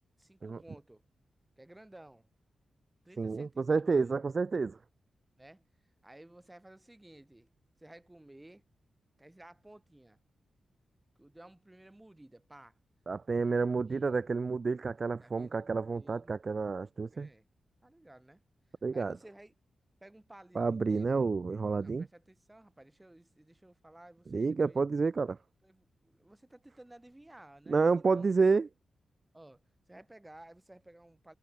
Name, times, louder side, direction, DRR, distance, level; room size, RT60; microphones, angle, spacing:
voice 1, 0.2-1.0 1.6-2.3 3.0-4.2 5.4-5.7 6.0-7.5 7.8-8.6 9.2-10.2 11.2-12.8 13.3-14.3 15.2-16.3 17.1-17.5 17.8-18.4 18.9-19.5 20.0-21.1 21.8-24.8 25.6-28.3 29.3-29.6 29.9-31.3, right 1 dB, 10° right, 7.7 m, -55 dB
voice 2, 3.2-4.8 13.1-17.3 18.8-19.1 20.6-22.1 24.3-25.4 27.7-28.7, right 4 dB, 35° right, 0.6 m, -29 dB
wide cardioid pair, 135°, 0 cm